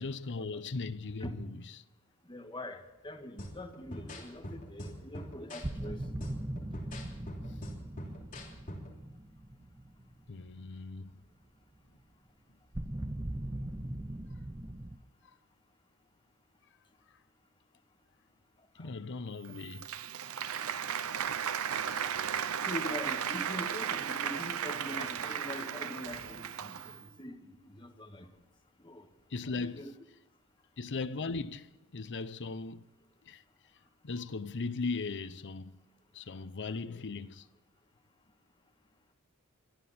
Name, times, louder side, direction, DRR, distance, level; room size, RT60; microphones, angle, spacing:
voice 1, 0.0-1.8 10.3-11.2 18.8-20.0 29.3-29.9 30.8-32.9 33.2-33.4 34.0-35.8 36.1-37.5, left 4 dB, 55° left, 0.8 m, -38 dB
voice 2, 2.3-6.0 18.8-18.9 22.6-28.3 28.8-29.1 29.6-29.9, left 1 dB, 20° left, 1.8 m, -43 dB
sound 1, 3.4-9.0, equal, 35° left, 3.2 m, -45 dB
sound 2, 3.9-4.0 4.2-4.3 5.6-10.7 12.7-15.0, right 1 dB, 15° right, 0.6 m, -40 dB
Applause, 19.4-27.1, right 8 dB, 70° right, 0.7 m, -35 dB
23.5 x 13.0 x 4.4 m
head